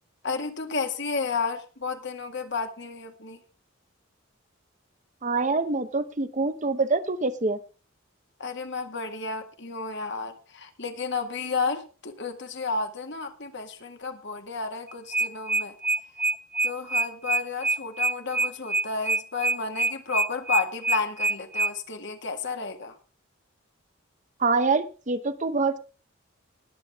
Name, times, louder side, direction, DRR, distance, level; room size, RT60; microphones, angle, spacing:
voice 1, 0.2-3.4 8.4-15.7 16.6-22.9, left 4 dB, 55° left, 5 dB, 1.8 m, -32 dB
voice 2, 5.2-7.6 24.4-25.8, right 3 dB, 35° right, 10 dB, 0.9 m, -25 dB
sound 1, 14.9-21.7, right 3 dB, 10° right, 0.8 m, -25 dB
20.5 x 8.2 x 3.6 m, 0.36 s
head